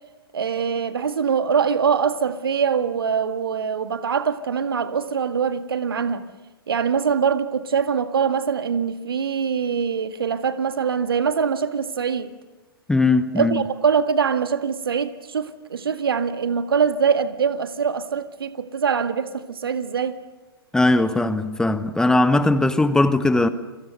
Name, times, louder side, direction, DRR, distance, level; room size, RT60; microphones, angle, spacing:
voice 1, 0.3-6.2 6.7-12.3 13.3-20.2, right 6 dB, 70° right, 1.9 m, -23 dB
voice 2, 12.9-13.6 20.7-23.5, left 2 dB, 5° left, 0.9 m, -19 dB
29.0 x 23.0 x 6.7 m
figure-of-eight pair, 110°, 13 cm